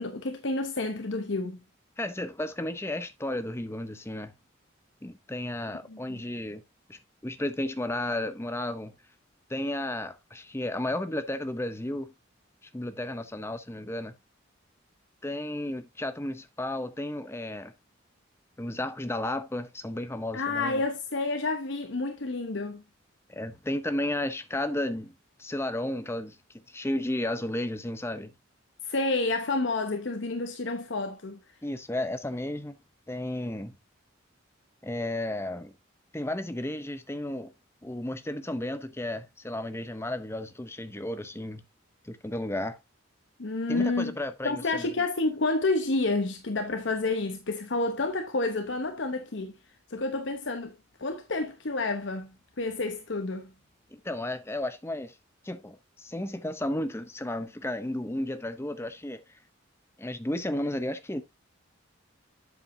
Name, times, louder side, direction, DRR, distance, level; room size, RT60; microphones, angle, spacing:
voice 1, 0.0-1.6 5.9-6.2 20.3-22.8 28.8-31.4 43.4-44.2 44.4-49.5 49.9-50.7 51.0-52.3 52.6-53.5, left 3 dB, 65° left, 0.9 m, -29 dB
voice 2, 2.0-4.3 5.0-6.6 6.9-8.9 9.5-12.1 12.6-14.1 15.2-17.7 18.6-20.8 23.3-28.3 31.6-32.8 33.1-33.8 34.8-35.7 36.1-37.5 37.8-41.6 42.0-42.8 43.7-44.9 53.9-55.2 55.4-59.2 60.0-61.2, left 1 dB, 10° left, 0.7 m, -33 dB
8.2 x 7.3 x 2.7 m
head